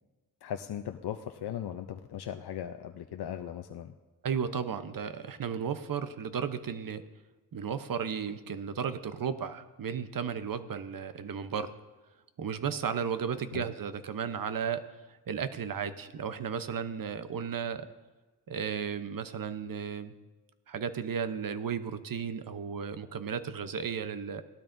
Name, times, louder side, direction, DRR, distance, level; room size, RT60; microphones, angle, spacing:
voice 1, 0.4-3.9 13.5-13.6, left 10 dB, 70° left, 5 dB, 0.7 m, -38 dB
voice 2, 4.2-7.0 7.5-11.7 12.4-14.8 15.3-17.9 18.5-20.1 20.7-24.4, right 7 dB, 55° right, 11 dB, 0.9 m, -34 dB
17.5 x 12.5 x 2.6 m, 1.2 s
cardioid pair, 80°, 40 cm